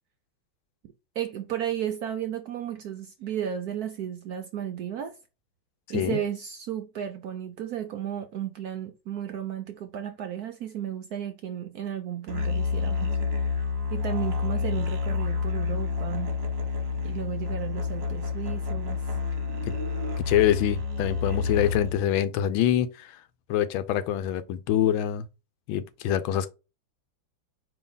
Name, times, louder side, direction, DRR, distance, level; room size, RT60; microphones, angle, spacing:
voice 1, 1.2-5.1 5.9-13.2 13.9-16.4 17.0-19.0, right 10 dB, 75° right, 0.9 m, -33 dB
Musical instrument, 12.3-22.1, left 5 dB, 40° right, 1.0 m, -29 dB
voice 2, 20.3-23.2 23.5-25.3 25.7-26.5, left 11 dB, 85° left, 1.4 m, -25 dB
4.7 x 2.9 x 3.8 m
omnidirectional pair, 2.2 m